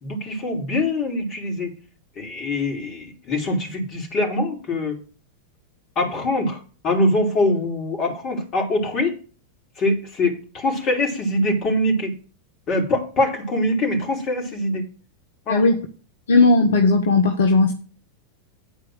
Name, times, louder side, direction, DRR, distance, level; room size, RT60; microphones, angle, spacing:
voice 1, 0.0-1.7 2.2-5.0 6.0-9.1 9.8-12.1 12.7-14.8 15.5-15.6, left 1 dB, 35° left, 3.6 m, -23 dB
voice 2, 15.5-15.8 16.3-17.7, left 3 dB, 60° left, 1.1 m, -16 dB
10.5 x 4.6 x 6.4 m
figure-of-eight pair, 90°, 0 cm